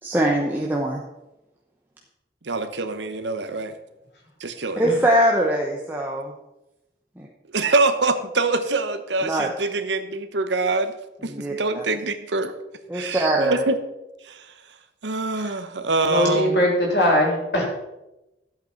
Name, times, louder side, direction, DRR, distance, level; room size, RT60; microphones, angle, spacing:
voice 1, 0.0-1.0 4.8-6.3 7.2-7.3 9.2-9.5 11.3-11.8 12.9-13.6, right 1 dB, 10° right, -2 dB, 1.0 m, -22 dB
voice 2, 2.4-3.7 4.4-4.9 7.5-10.9 11.2-12.5 12.9-13.8 14.2-14.5 15.0-16.6, right 3 dB, 85° right, 9 dB, 1.0 m, -24 dB
voice 3, 16.0-17.6, left 1 dB, 70° left, -2 dB, 3.6 m, -21 dB
12.5 x 8.2 x 4.5 m, 0.95 s
head